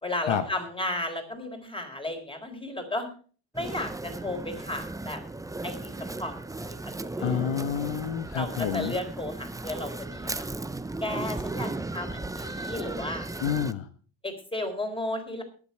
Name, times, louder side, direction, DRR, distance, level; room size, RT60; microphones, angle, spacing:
voice 1, 0.0-3.1 3.5-5.2 5.6-5.9 6.2-6.8 7.0-7.4 8.3-10.4 11.0-13.4 14.2-15.4, left 1 dB, 10° left, 5 dB, 4.0 m, -34 dB
sound 1, 3.5-13.7, right 2 dB, 5° right, 0.6 m, -36 dB
voice 2, 7.2-8.9 13.4-13.9, left 8 dB, 65° left, 9 dB, 1.2 m, -28 dB
22.0 x 7.6 x 4.4 m, 0.42 s
cardioid pair, 95°, 48 cm